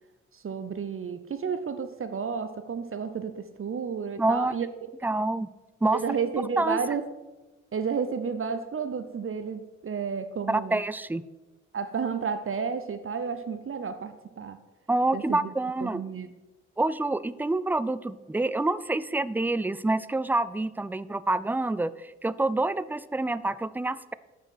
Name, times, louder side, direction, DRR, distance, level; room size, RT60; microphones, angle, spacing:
voice 1, 0.3-4.9 5.9-7.1 7.7-10.8 11.7-14.6 15.1-15.4 15.8-16.3, right 6 dB, 40° right, 11 dB, 0.8 m, -31 dB
voice 2, 4.2-4.5 5.0-5.5 5.8-6.0 6.6-6.8 10.5-11.2 14.9-16.0 16.8-24.1, right 2 dB, 5° right, 16 dB, 0.4 m, -27 dB
8.3 x 6.2 x 6.0 m, 1.1 s
hypercardioid pair, 40°, 35 cm